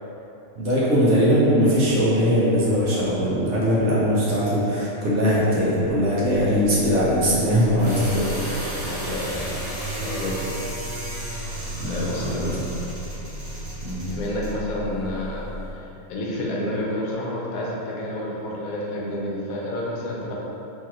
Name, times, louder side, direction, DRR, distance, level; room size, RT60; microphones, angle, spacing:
voice 1, 0.6-8.6 11.8-12.5 13.8-14.0, equal, 65° right, -7 dB, 1.0 m, -21 dB
sound 1, 5.6-15.7, right 1 dB, 30° right, 0.3 m, -33 dB
voice 2, 8.7-9.5 10.0-10.5 11.9-12.5 14.1-20.3, left 1 dB, 85° left, -4 dB, 1.0 m, -30 dB
3.1 x 2.8 x 2.4 m, 2.9 s
omnidirectional pair, 1.5 m